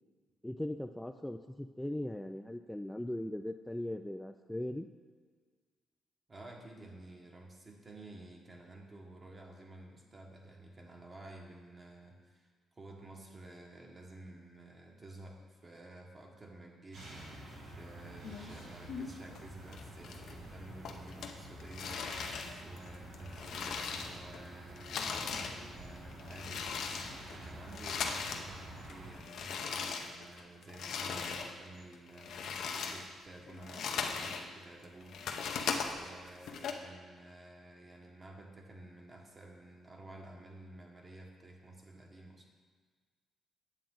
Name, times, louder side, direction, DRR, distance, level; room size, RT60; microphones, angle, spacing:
voice 1, 0.4-4.9, left 1 dB, 5° left, 5 dB, 0.3 m, -39 dB
voice 2, 6.3-42.5, right 2 dB, 30° right, 0 dB, 1.5 m, -52 dB
sound 1, 16.9-29.1, right 1 dB, 80° right, 2.5 m, -49 dB
sound 2, 18.2-19.4 19.7-20.5 20.8-24.4 24.7-28.5 28.8-31.5 31.9-34.5 34.8-36.7, left 5 dB, 70° left, 0.7 m, -39 dB
8.9 x 7.4 x 3.9 m, 1.5 s
cardioid pair, 90°, 0 cm